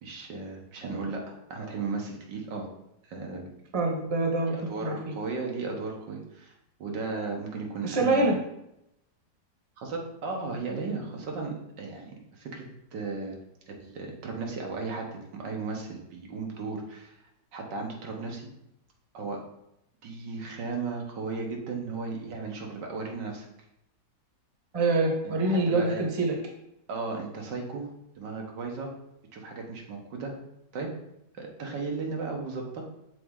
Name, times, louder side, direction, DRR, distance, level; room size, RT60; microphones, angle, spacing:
voice 1, 0.0-1.2 1.5-2.7 3.0-3.5 4.5-6.5 6.8-8.3 9.8-12.7 12.9-13.4 13.8-17.2 17.5-18.5 19.1-19.4 20.0-23.5 25.2-26.0 26.9-27.9 28.2-28.9 29.3-30.3 30.7-30.9 31.3-32.8, right 4 dB, 85° right, 1 dB, 1.8 m, -35 dB
voice 2, 3.7-4.5 4.8-5.1 7.8-8.3 24.7-26.4, right 2 dB, 25° right, 1 dB, 0.9 m, -25 dB
6.5 x 4.1 x 3.7 m, 0.82 s
omnidirectional pair, 1.8 m